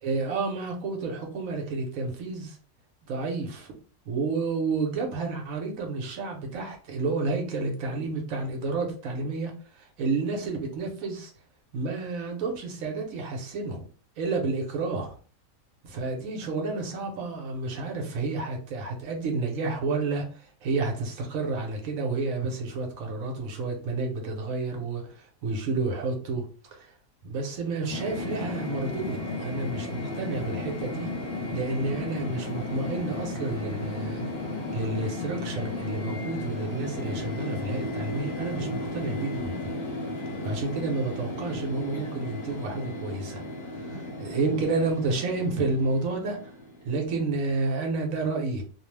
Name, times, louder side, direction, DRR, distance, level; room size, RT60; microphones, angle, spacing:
voice 1, 0.0-2.6 3.1-3.7 4.0-11.3 11.7-13.9 14.2-15.2 15.8-26.5 26.7-26.9 27.2-31.1 31.5-34.2 34.7-39.7 40.4-43.4 43.7-46.5 46.8-48.6, right 3 dB, 65° right, 2 dB, 1.1 m, -30 dB
sound 1, 27.9-47.0, left 2 dB, 45° left, 0.7 m, -34 dB
2.7 x 2.0 x 3.2 m, 0.41 s
omnidirectional pair, 1.7 m